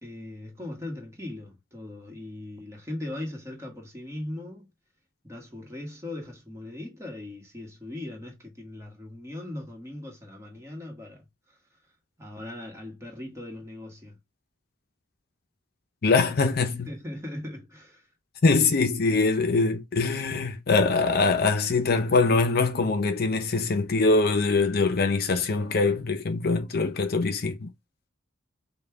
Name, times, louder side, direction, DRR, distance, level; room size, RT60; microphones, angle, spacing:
voice 1, 0.0-4.7 5.2-11.6 12.2-14.2 16.9-18.1, left 1 dB, 15° right, 1.4 m, -39 dB
voice 2, 16.0-16.9 18.4-27.7, left 3 dB, 55° left, 0.5 m, -23 dB
5.5 x 2.3 x 3.4 m
head